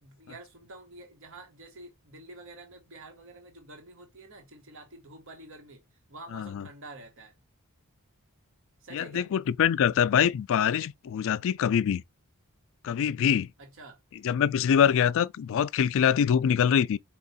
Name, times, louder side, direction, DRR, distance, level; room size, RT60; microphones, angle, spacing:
voice 1, 0.0-5.8 6.1-7.3 8.8-9.3 13.6-14.0, right 2 dB, 65° right, 1.1 m, -48 dB
voice 2, 6.3-6.6 8.9-12.0 12.8-13.5 14.2-17.0, left 8 dB, 60° left, 0.3 m, -24 dB
4.5 x 2.4 x 4.0 m
head